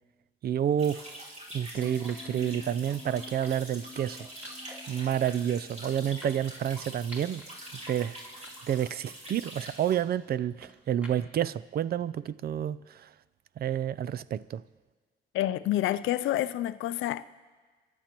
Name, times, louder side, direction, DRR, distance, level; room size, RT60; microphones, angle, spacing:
voice 1, 0.4-4.3 4.9-7.4 7.9-8.2 8.6-13.1 13.6-14.6, right 10 dB, 50° right, 0.4 m, -29 dB
sound 1, 0.8-1.0 2.1-2.4 3.4-3.8 4.4-4.8 5.3-5.6 6.2-7.5 7.9-8.0 8.4-8.9 9.2-11.4, left 1 dB, 5° right, 2.3 m, -52 dB
sound 2, 0.8-9.9, equal, 35° right, 4.9 m, -45 dB
sound 3, 1.7-8.0 8.4-8.7, left 5 dB, 25° left, 0.6 m, -50 dB
voice 2, 15.3-17.3, left 13 dB, 80° left, 0.5 m, -28 dB
26.5 x 11.5 x 3.0 m
cardioid pair, 90°, 20 cm